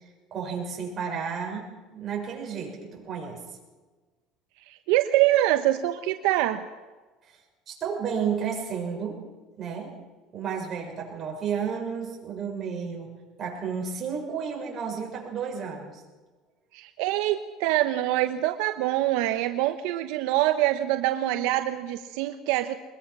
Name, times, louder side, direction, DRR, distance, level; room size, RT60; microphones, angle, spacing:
voice 1, 0.3-3.4 7.2-7.4 7.7-9.2 9.6-9.9 10.3-13.1 13.4-16.0, right 6 dB, 35° right, 0 dB, 6.9 m, -32 dB
voice 2, 4.7-6.7 16.7-22.7, right 14 dB, 80° right, 8 dB, 1.0 m, -25 dB
23.0 x 21.0 x 6.2 m, 1.3 s
cardioid pair, 130°, 0 cm